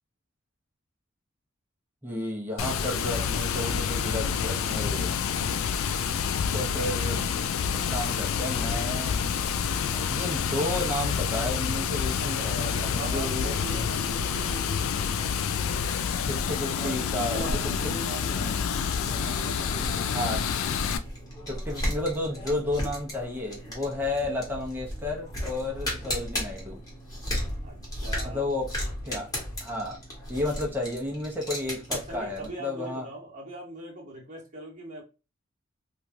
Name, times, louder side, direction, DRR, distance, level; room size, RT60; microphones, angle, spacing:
voice 1, 2.0-5.2 6.5-9.2 9.9-13.6 16.3-17.6 20.1-20.4 21.5-26.8 28.2-29.3 29.6-30.0 30.3-33.0, left 1 dB, 10° right, 0.6 m, -32 dB
Water, 2.6-21.0, left 7 dB, 75° left, 0.3 m, -28 dB
voice 2, 5.1-5.7 12.2-15.1 16.7-18.8 19.2-20.2 27.6-28.4 31.9-35.0, right 1 dB, 40° right, 1.0 m, -40 dB
sound 1, 16.5-32.5, equal, 20° left, 1.2 m, -36 dB
3.0 x 2.3 x 2.5 m
head